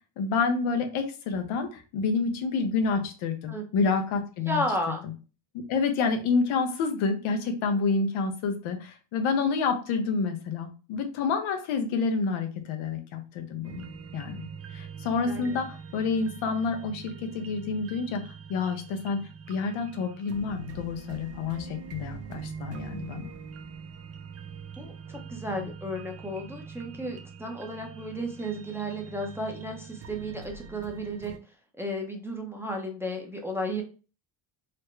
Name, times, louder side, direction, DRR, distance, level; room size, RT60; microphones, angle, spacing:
voice 1, 0.2-4.6 5.5-13.9 14.1-19.2 19.5-23.3, left 4 dB, 85° left, 5 dB, 0.9 m, -28 dB
voice 2, 3.5-4.0 4.5-5.0 15.3-15.5 24.8-31.3 31.8-33.8, equal, 5° right, 1 dB, 0.7 m, -33 dB
sound 1, 13.6-31.4, right 6 dB, 35° right, 0.4 m, -43 dB
4.1 x 2.1 x 3.2 m, 0.35 s
cardioid pair, 100°, 47 cm